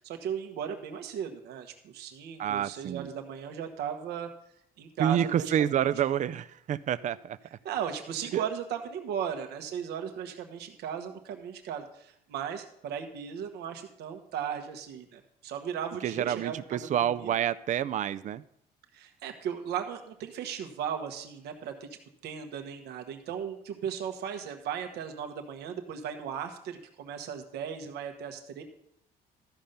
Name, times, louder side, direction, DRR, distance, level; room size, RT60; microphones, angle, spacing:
voice 1, 0.0-4.3 4.8-5.9 7.6-17.4 18.9-21.9 22.2-28.6, right 8 dB, 75° right, 6 dB, 1.2 m, -36 dB
voice 2, 2.4-3.1 5.0-7.4 8.3-8.4 16.0-18.4, right 10 dB, 45° right, 15 dB, 0.4 m, -28 dB
13.0 x 5.2 x 5.6 m, 0.72 s
cardioid pair, 110°, 17 cm